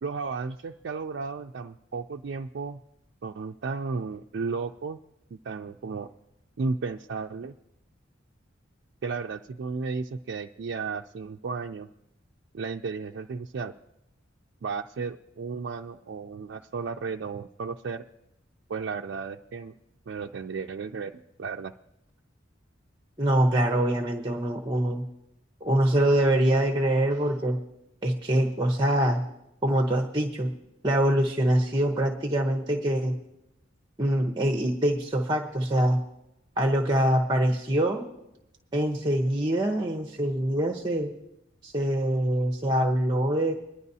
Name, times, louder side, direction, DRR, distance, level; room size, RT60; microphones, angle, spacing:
voice 1, 0.0-2.8 3.2-5.0 5.3-6.1 6.6-7.5 9.0-11.9 12.5-13.7 14.6-18.0 18.7-19.7 20.1-21.7, right 4 dB, 60° right, 3 dB, 0.4 m, -34 dB
voice 2, 23.2-25.0 25.6-27.6 28.0-29.2 29.6-30.5 30.8-33.2 34.0-36.0 36.6-38.0 38.7-41.1 41.6-43.5, right 1 dB, 20° right, 4 dB, 0.9 m, -24 dB
22.5 x 11.0 x 2.7 m, 0.88 s
head